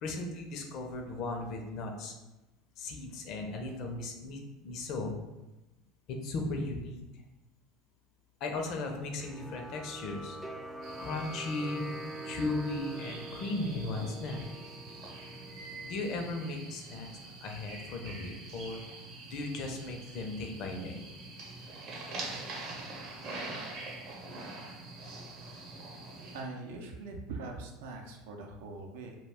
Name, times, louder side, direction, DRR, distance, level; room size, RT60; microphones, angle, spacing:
voice 1, 0.0-2.1 2.8-5.1 6.1-7.0 8.4-10.4 11.0-11.9 12.2-14.4 15.8-17.1 17.4-18.8 19.3-21.0, left 2 dB, 55° left, 3 dB, 0.5 m, -36 dB
sound 1, 9.2-16.1, right 1 dB, 5° right, 0.3 m, -44 dB
sound 2, 10.8-26.4, right 2 dB, 50° right, 0.7 m, -44 dB
voice 2, 26.3-29.2, right 3 dB, 85° right, 2 dB, 0.5 m, -42 dB
2.3 x 2.2 x 3.3 m, 1.0 s
supercardioid pair, 110°, 0 cm